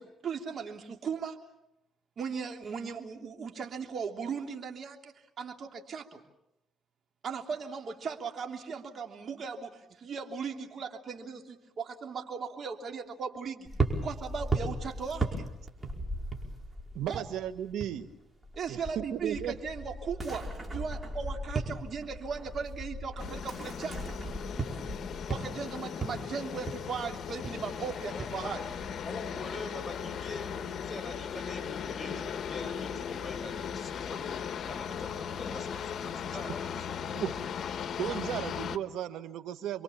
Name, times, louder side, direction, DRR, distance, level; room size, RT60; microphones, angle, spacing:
voice 1, 0.0-1.4 2.2-6.2 7.2-13.7 14.0-15.5 17.1-17.2 18.5-24.1 25.3-28.6 38.1-38.2, right 5 dB, 55° right, 4 dB, 3.1 m, -38 dB
sound 1, 13.6-18.0 18.3-29.1, right 3 dB, 20° right, 4.9 m, -37 dB
voice 2, 16.9-18.1 18.7-19.6 37.1-37.3 38.0-39.8, right 11 dB, 85° right, 11 dB, 1.5 m, -35 dB
sound 2, 23.2-38.8, left 7 dB, 60° left, 1.2 m, -37 dB
voice 3, 28.1-28.5 29.0-37.6, left 2 dB, 25° left, 3 dB, 5.7 m, -44 dB
28.5 x 23.0 x 7.2 m, 0.87 s
cardioid pair, 90°, 0 cm